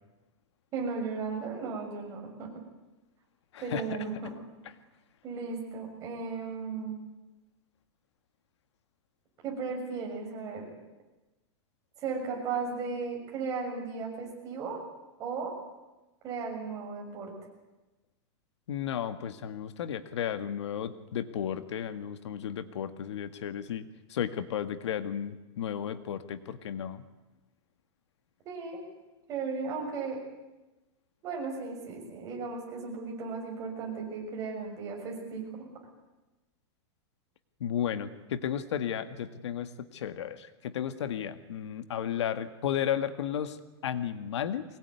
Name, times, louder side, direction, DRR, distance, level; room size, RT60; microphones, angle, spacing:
voice 1, 0.7-2.5 3.6-4.3 5.2-7.0 9.4-10.7 12.0-14.8 15.2-15.5 16.2-17.3 28.4-28.8 29.3-30.2 31.2-35.4, right 4 dB, 25° right, 0 dB, 6.6 m, -35 dB
voice 2, 3.5-4.0 18.7-27.0 37.6-44.6, left 9 dB, 90° left, 10 dB, 1.9 m, -34 dB
23.5 x 20.0 x 9.7 m, 1.1 s
supercardioid pair, 170°, 14 cm